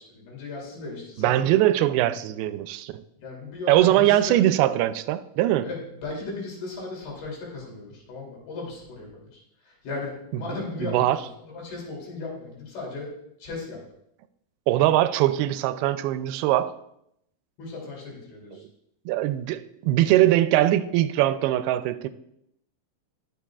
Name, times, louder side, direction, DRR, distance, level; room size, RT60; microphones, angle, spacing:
voice 1, 0.1-1.5 3.2-4.4 5.6-13.1 13.4-13.8 17.6-18.6, left 3 dB, 75° left, -3 dB, 4.8 m, -36 dB
voice 2, 1.2-3.0 3.7-5.7 10.8-11.2 14.7-16.7 19.1-22.1, right 14 dB, 90° right, 12 dB, 2.5 m, -21 dB
19.5 x 6.7 x 2.4 m, 0.78 s
omnidirectional pair, 4.4 m